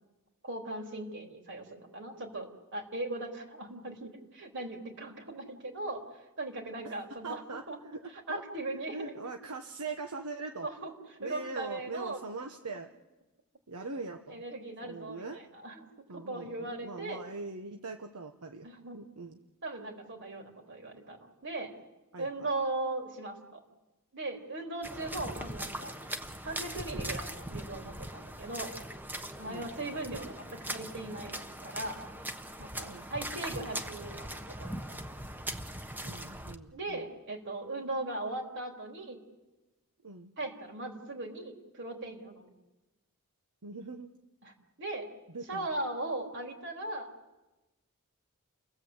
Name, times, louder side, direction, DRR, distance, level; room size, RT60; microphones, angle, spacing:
voice 1, 0.4-7.8 8.3-9.1 10.6-10.9 11.2-12.2 12.7-12.8 13.8-13.9 14.3-17.2 18.6-19.0 19.6-21.7 22.2-23.6 24.1-25.9 26.4-28.7 29.4-32.0 32.6-34.3 34.6-35.0 36.7-39.2 40.4-42.5 44.4-44.5 44.8-45.1 45.5-47.1, right 2 dB, 55° right, 2 dB, 3.8 m, -39 dB
voice 2, 7.2-8.0 8.3-8.4 8.9-10.7 11.2-12.9 13.7-14.4 14.8-15.4 16.1-18.7 18.9-19.4 22.1-22.5 29.5-29.7 32.8-33.1 36.0-37.1 40.0-40.3 43.6-44.2 45.3-45.7, right 3 dB, 80° right, 4 dB, 1.2 m, -41 dB
sound 1, 24.8-36.5, right 1 dB, 10° right, 1.1 m, -40 dB
30.0 x 19.5 x 8.1 m, 1.1 s
head